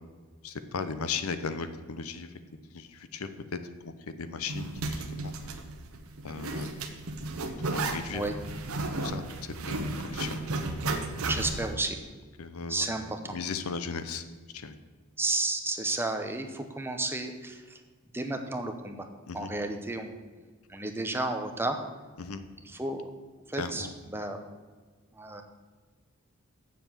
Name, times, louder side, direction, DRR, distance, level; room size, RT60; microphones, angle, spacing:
voice 1, 0.4-2.3 2.7-3.3 3.8-5.3 6.2-6.7 7.6-8.2 9.0-10.4 12.4-12.9 13.3-14.2 14.5-14.8 19.3-19.5 22.2-22.4 23.6-23.9, left 5 dB, 75° left, 11 dB, 0.7 m, -36 dB
Zipper (clothing), 4.5-11.7, right 2 dB, 75° right, 1.0 m, -34 dB
voice 2, 11.2-12.0 12.7-13.3 15.2-17.8 18.1-19.1 19.3-20.1 20.7-21.8 22.6-23.1 23.5-24.4 25.1-25.4, right 2 dB, 10° right, 5 dB, 0.8 m, -32 dB
7.8 x 7.2 x 7.2 m, 1.5 s
head